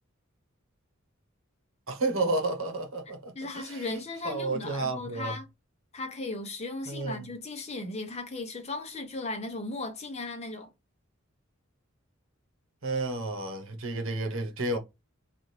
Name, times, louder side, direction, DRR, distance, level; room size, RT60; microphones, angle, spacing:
voice 1, 1.9-3.8 4.2-5.4 6.9-7.3 12.8-14.8, right 2 dB, 80° right, 1.0 m, -31 dB
voice 2, 3.1-5.5 5.9-10.7, left 2 dB, 30° left, 0.8 m, -37 dB
4.1 x 2.5 x 3.1 m
head